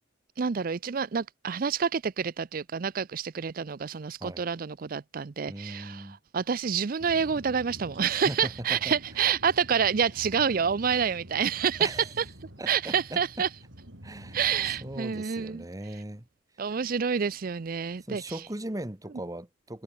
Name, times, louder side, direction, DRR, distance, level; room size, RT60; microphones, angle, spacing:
voice 1, 0.4-12.2 12.7-13.5 14.3-15.6 16.6-18.4, right 7 dB, 50° right, 0.5 m, -28 dB
voice 2, 5.5-6.2 8.1-8.9 11.8-12.0 12.6-13.2 14.0-14.4 14.8-16.3 18.0-19.8, right 1 dB, 20° right, 1.5 m, -38 dB
sound 1, 7.0-15.0, right 1 dB, 85° right, 6.8 m, -47 dB
head